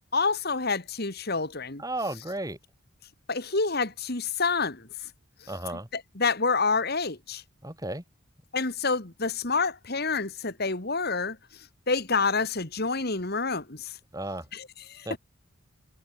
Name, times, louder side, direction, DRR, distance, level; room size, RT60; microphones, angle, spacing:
voice 1, 0.1-1.8 3.3-4.9 5.4-5.5 5.9-7.4 8.5-11.4 11.9-13.9 14.5-15.2, left 4 dB, 45° left, 2.1 m, -28 dB
voice 2, 1.8-2.6 5.5-5.9 7.6-8.0 14.1-14.5 15.0-15.1, right 1 dB, 15° right, 6.7 m, -33 dB
head